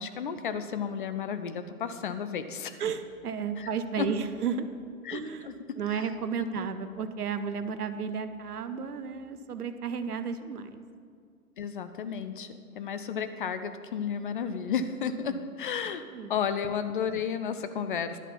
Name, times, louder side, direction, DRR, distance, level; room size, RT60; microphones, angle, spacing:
voice 1, 0.0-2.8 3.6-3.7 4.0-4.1 5.0-6.0 6.4-6.7 11.6-16.0 16.3-18.2, left 7 dB, 35° left, 10 dB, 0.5 m, -33 dB
voice 2, 2.8-4.7 5.1-5.5 5.8-10.8 15.3-15.4 16.1-16.3, right 6 dB, 75° right, 11 dB, 0.9 m, -33 dB
11.0 x 5.8 x 7.4 m, 2.2 s
figure-of-eight pair, 125°, 46 cm